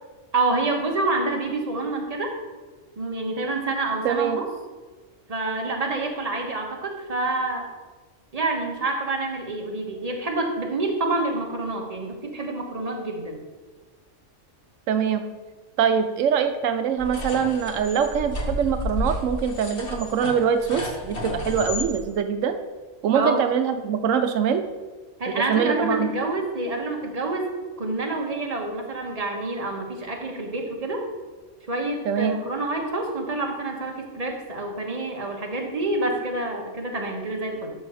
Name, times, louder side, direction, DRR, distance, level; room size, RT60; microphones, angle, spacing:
voice 1, 0.3-2.3 3.0-4.4 5.3-7.7 8.3-13.4 23.1-23.4 25.2-31.1 31.7-37.7, right 2 dB, 30° right, 1 dB, 1.4 m, -27 dB
voice 2, 4.0-4.4 14.9-15.2 15.8-22.6 23.0-24.6 25.3-26.1 32.1-32.4, right 7 dB, 90° right, 8 dB, 1.0 m, -23 dB
sound 1, 17.0-21.9, left 1 dB, 50° left, 1.5 m, -31 dB
12.0 x 4.2 x 6.2 m, 1.3 s
omnidirectional pair, 1.3 m